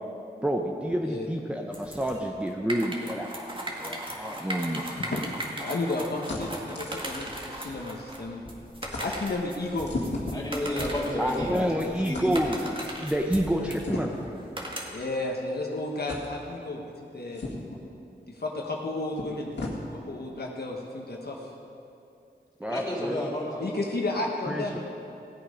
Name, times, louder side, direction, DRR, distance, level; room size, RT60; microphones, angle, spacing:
voice 1, 0.4-4.8 11.2-14.1 22.6-23.2 23.5-23.7 24.1-24.8, equal, 5° right, 0 dB, 0.9 m, -29 dB
sound 1, 1.7-15.2, right 1 dB, 30° right, 1.9 m, -38 dB
voice 2, 4.8-5.3 5.6-8.4 9.0-9.9 14.9-16.8 17.1-17.4 18.4-19.5 19.9-21.4 23.6-24.8, left 2 dB, 60° left, -1 dB, 1.2 m, -32 dB
sound 2, 5.3-8.2 8.4-8.6 8.9-9.1 9.8-11.7 12.1-12.3 13.8-14.3 15.0-15.1 16.1-16.3 17.3-17.8 18.8-18.9 19.1-19.8, left 2 dB, 80° left, 2.1 m, -37 dB
voice 3, 10.3-11.7 12.0-12.3 22.6-23.8, left 1 dB, 20° left, -4 dB, 3.6 m, -31 dB
16.5 x 8.3 x 5.2 m, 2.6 s
wide cardioid pair, 55°, 18 cm